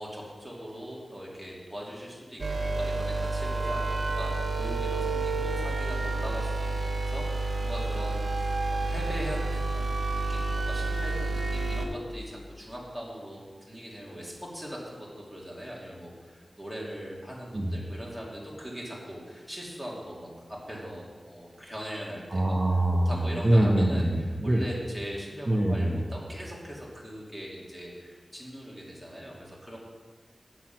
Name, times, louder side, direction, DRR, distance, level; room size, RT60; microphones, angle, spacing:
voice 1, 0.0-22.6 23.0-24.1 24.4-29.8, equal, ahead, -5 dB, 2.7 m, -40 dB
sound 1, 2.4-11.8, right 3 dB, 75° right, 1.2 m, -29 dB
voice 2, 22.3-24.6 25.5-26.0, right 1 dB, 35° right, 0 dB, 0.9 m, -24 dB
7.5 x 7.4 x 5.9 m, 1.4 s
wide cardioid pair, 80°, 0 cm